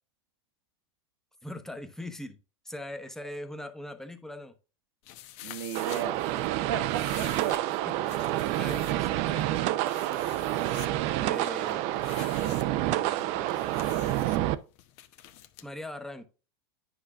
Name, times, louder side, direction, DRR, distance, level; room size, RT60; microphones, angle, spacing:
voice 1, 1.4-2.4 2.6-4.5 7.8-7.9 8.6-10.0 11.2-11.9 12.9-13.6 15.6-16.3, left 1 dB, 5° left, 1.0 m, -41 dB
sound 1, 5.0-15.7, left 13 dB, 50° left, 0.9 m, -48 dB
voice 2, 5.4-6.2 6.7-7.5 12.0-12.2 13.1-13.5, right 8 dB, 70° right, 1.2 m, -37 dB
sound 2, 5.7-14.5, right 15 dB, 50° right, 0.5 m, -28 dB
9.9 x 5.7 x 2.5 m
hypercardioid pair, 100°, 14 cm